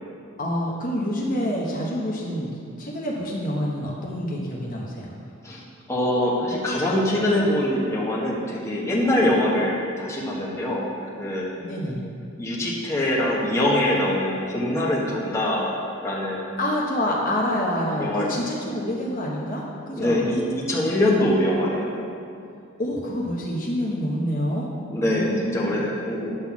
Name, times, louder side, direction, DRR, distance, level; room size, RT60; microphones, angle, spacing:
voice 1, 0.4-2.5 2.8-5.1 11.6-12.0 16.6-20.2 22.8-24.7 25.0-25.9, equal, 40° left, -4 dB, 1.1 m, -27 dB
voice 2, 5.9-10.8 11.2-11.5 12.4-15.7 16.0-16.4 18.0-18.3 19.9-21.9 24.9-26.4, left 1 dB, 15° left, -5 dB, 1.3 m, -23 dB
10.5 x 4.0 x 7.2 m, 2.5 s
head